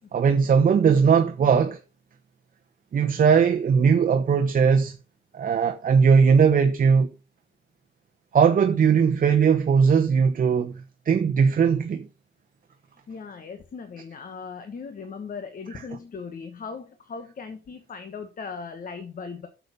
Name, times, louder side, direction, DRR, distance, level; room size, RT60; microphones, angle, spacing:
voice 1, 0.1-1.8 2.9-4.9 5.3-7.1 8.3-10.7 11.1-12.1, right 6 dB, 40° right, 1.1 m, -19 dB
voice 2, 13.1-19.5, left 5 dB, 40° left, 1.3 m, -38 dB
8.8 x 6.9 x 5.3 m
cardioid pair, 140°, 21 cm